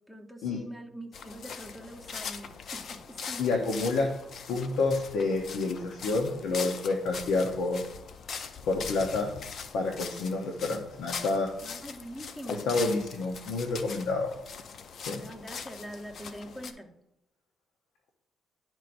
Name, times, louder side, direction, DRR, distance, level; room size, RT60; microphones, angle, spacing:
voice 1, 0.1-3.4 11.6-12.8 15.2-16.9, equal, 5° left, 4 dB, 0.9 m, -44 dB
sound 1, 1.1-16.7, left 6 dB, 60° left, 0.5 m, -41 dB
voice 2, 3.4-4.1 4.5-7.8 8.7-9.3 9.7-11.5 12.5-14.3 15.1-15.2, left 3 dB, 85° left, 2 dB, 0.8 m, -29 dB
11.0 x 4.5 x 2.6 m, 0.86 s
cardioid pair, 90°, 0 cm